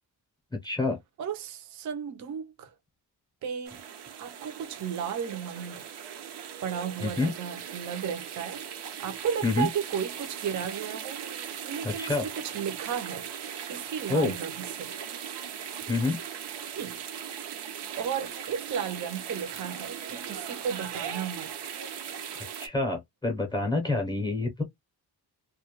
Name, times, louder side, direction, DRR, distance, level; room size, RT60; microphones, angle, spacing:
voice 1, 0.6-1.0 7.0-7.3 9.4-9.7 11.8-12.3 14.1-14.3 15.9-16.2 22.3-24.6, left 3 dB, 10° left, 0.6 m, -27 dB
voice 2, 1.2-2.7 3.4-3.8 4.2-5.8 6.6-8.7 9.0-11.2 11.6-13.3 13.7-14.9 16.6-17.0 17.4-17.7 18.0-21.5, right 8 dB, 50° right, 0.5 m, -34 dB
sound 1, 3.6-22.7, right 8 dB, 90° right, 0.7 m, -39 dB
2.2 x 2.1 x 2.9 m
wide cardioid pair, 175°, 40 cm